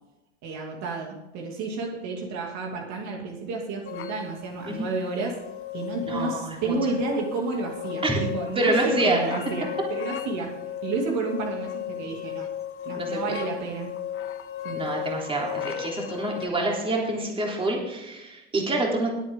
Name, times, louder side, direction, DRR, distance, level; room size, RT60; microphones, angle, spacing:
voice 1, 0.4-5.4 5.7-12.5 12.8-13.9 14.6-14.8, right 3 dB, 50° right, 0 dB, 2.8 m, -31 dB
sound 1, 3.8-16.5, left 10 dB, 35° left, 1.3 m, -35 dB
voice 2, 6.1-6.7 8.0-8.2 8.6-9.2 12.9-13.4 14.7-19.1, right 2 dB, 15° right, -1 dB, 3.5 m, -27 dB
20.5 x 8.8 x 3.8 m, 0.99 s
supercardioid pair, 120°, 36 cm